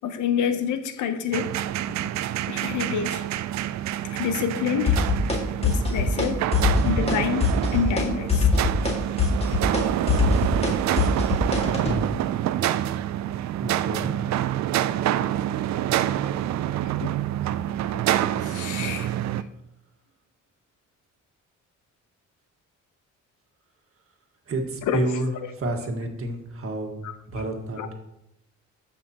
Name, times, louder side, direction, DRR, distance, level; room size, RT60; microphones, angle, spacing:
voice 1, 0.0-1.6 1.9-2.0 2.5-3.2 4.1-5.1 5.6-6.5 6.8-8.5 17.0-17.1 17.6-18.0 18.4-19.2 24.9-25.1 27.0-27.1 27.8-27.9, left 7 dB, 80° left, 0.8 m, -28 dB
sound 1, 1.3-19.4, right 12 dB, 65° right, 0.5 m, -27 dB
sound 2, 4.9-5.4 5.6-6.3 6.5-7.2 7.4-8.0 8.3-12.0, left 4 dB, 20° left, 2.0 m, -22 dB
voice 2, 13.6-14.2 24.5-25.3 25.6-27.0 27.3-27.9, right 1 dB, 50° right, 1.7 m, -29 dB
13.5 x 5.7 x 2.9 m
cardioid pair, 90°, 30 cm